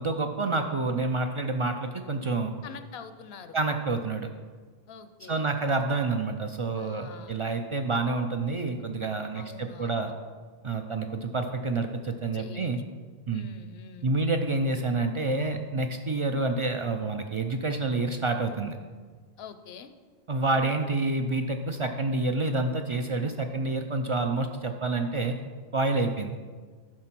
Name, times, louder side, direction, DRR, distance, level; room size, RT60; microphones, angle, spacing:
voice 1, 0.0-2.5 3.5-4.3 5.3-10.1 10.6-12.8 13.3-13.5 14.0-18.8 20.3-25.4 25.7-26.4, right 3 dB, 55° right, 6 dB, 0.3 m, -28 dB
voice 2, 2.6-3.6 4.9-5.5 6.8-7.3 9.3-10.2 12.3-12.7 13.3-14.2 19.4-19.9, left 6 dB, 75° left, 10 dB, 0.8 m, -45 dB
10.5 x 3.7 x 5.9 m, 1.5 s
omnidirectional pair, 1.1 m